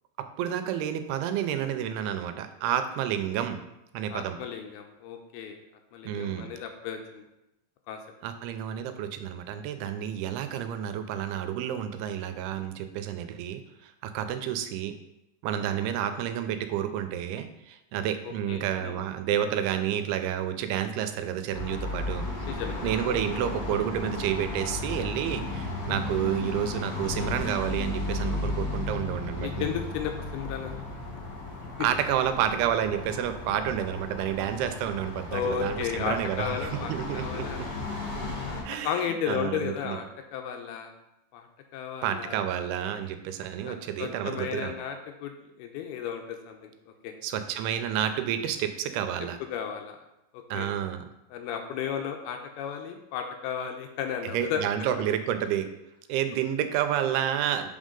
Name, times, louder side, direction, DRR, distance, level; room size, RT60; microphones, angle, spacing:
voice 1, 0.4-3.6 3.9-4.4 6.0-6.5 8.2-14.9 15.4-22.3 22.8-29.7 31.8-37.9 38.6-40.0 42.0-44.7 47.2-49.4 50.5-51.1 54.3-55.7 56.1-57.7, right 10 dB, 90° right, 9 dB, 2.6 m, -30 dB
voice 2, 4.1-5.6 5.9-7.2 7.9-8.0 18.5-19.0 22.4-23.1 29.4-30.7 35.3-37.7 38.4-40.0 40.3-40.9 41.3-41.5 41.7-42.4 43.6-45.3 45.6-46.7 47.0-47.1 49.4-50.0 50.3-50.7 51.3-54.6, left 8 dB, 85° left, 5 dB, 2.5 m, -34 dB
sound 1, 21.5-38.6, left 2 dB, 30° left, 2.9 m, -34 dB
6.3 x 5.8 x 3.7 m, 0.88 s
omnidirectional pair, 4.5 m